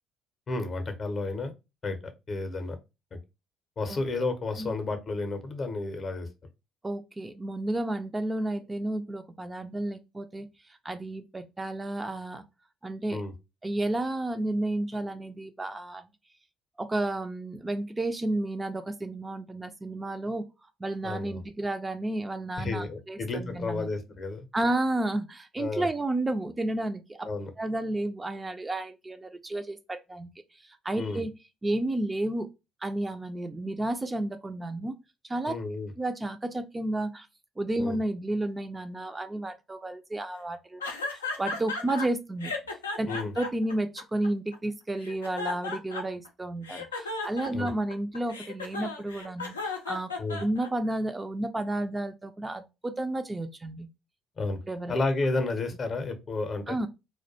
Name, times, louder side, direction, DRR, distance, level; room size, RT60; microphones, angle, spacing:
voice 1, 0.5-1.5 1.8-2.0 2.3-2.8 3.8-6.3 13.1-13.3 21.0-21.4 22.6-24.4 25.6-25.9 27.2-27.5 31.0-31.2 35.5-35.9 37.8-38.0 43.1-43.3 47.5-47.7 50.2-50.4 54.4-54.6 54.9-56.8, left 3 dB, 40° left, 0.6 m, -31 dB
voice 2, 6.8-12.4 12.8-13.2 13.6-16.1 16.8-20.4 20.8-23.9 24.5-27.3 27.6-31.3 31.6-32.5 32.8-34.9 35.2-35.6 36.0-37.3 37.6-40.9 41.4-42.5 43.0-43.1 43.4-50.1 50.4-53.9 54.7-54.9 56.7-56.9, right 1 dB, 20° right, 0.3 m, -32 dB
sound 1, 40.8-42.1 42.4-44.5 45.0-46.3 46.6-50.9, left 3 dB, 90° left, 0.3 m, -35 dB
2.3 x 2.1 x 2.6 m
hypercardioid pair, 55°, 0 cm